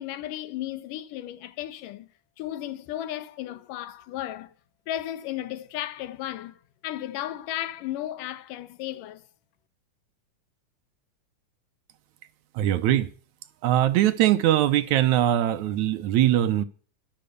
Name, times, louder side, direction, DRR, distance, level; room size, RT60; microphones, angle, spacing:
voice 1, 0.0-2.1 2.4-4.5 4.9-9.2, left 13 dB, 85° left, 2.6 m, -34 dB
voice 2, 12.5-13.1 13.6-16.6, right 12 dB, 75° right, 2.0 m, -21 dB
12.0 x 12.0 x 6.6 m
omnidirectional pair, 3.7 m